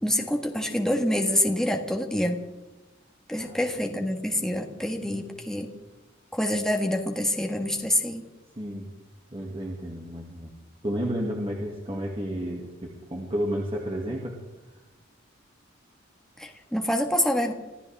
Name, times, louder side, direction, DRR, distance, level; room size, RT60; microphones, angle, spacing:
voice 1, 0.0-2.4 3.3-5.7 6.3-8.2 16.4-17.5, left 1 dB, 5° left, 2 dB, 1.6 m, -26 dB
voice 2, 8.6-8.9 9.3-10.5 10.8-14.4, equal, 25° right, -2 dB, 2.4 m, -32 dB
26.0 x 15.0 x 3.6 m, 1.1 s
head